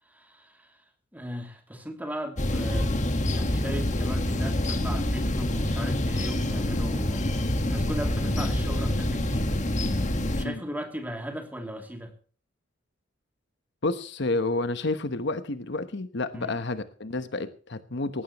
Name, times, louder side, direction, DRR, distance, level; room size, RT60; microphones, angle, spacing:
voice 1, 0.0-0.8 1.1-2.9 3.3-12.1 16.3-16.6, equal, 10° right, 4 dB, 2.9 m, -38 dB
sound 1, 2.4-10.5, left 1 dB, 40° left, 1.7 m, -26 dB
voice 2, 13.8-18.2, left 2 dB, 60° left, 11 dB, 1.1 m, -30 dB
19.0 x 15.5 x 3.1 m, 0.41 s
head